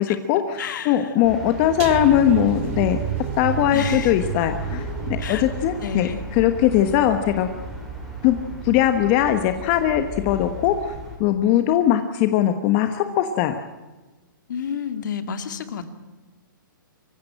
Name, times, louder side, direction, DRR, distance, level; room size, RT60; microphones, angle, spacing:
voice 1, 0.0-0.6 0.8-3.0 3.4-6.1 6.4-7.5 8.2-8.4 8.6-10.9 11.2-13.6, left 11 dB, 30° left, 8 dB, 1.3 m, -20 dB
voice 2, 0.6-1.1 3.7-4.1 5.2-5.5 5.8-6.2 14.5-15.8, left 7 dB, 60° left, 9 dB, 2.4 m, -30 dB
sound 1, 1.2-11.2, equal, ahead, 5.3 m, -34 dB
sound 2, 1.8-8.9 9.2-9.5 9.9-10.0, right 13 dB, 35° right, 0.7 m, -33 dB
25.0 x 15.5 x 8.9 m, 1.2 s
hypercardioid pair, 155°, 11 cm